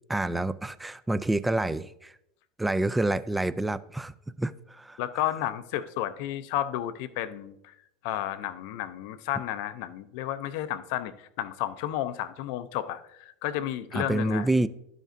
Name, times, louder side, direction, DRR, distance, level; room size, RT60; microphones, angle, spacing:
voice 1, 0.1-2.1 2.6-4.1 4.4-5.0 13.9-14.7, right 2 dB, 10° right, 0.3 m, -28 dB
voice 2, 5.0-7.8 8.0-14.5, left 12 dB, 65° left, 0.5 m, -32 dB
12.5 x 5.1 x 2.6 m
hypercardioid pair, 80°, 0 cm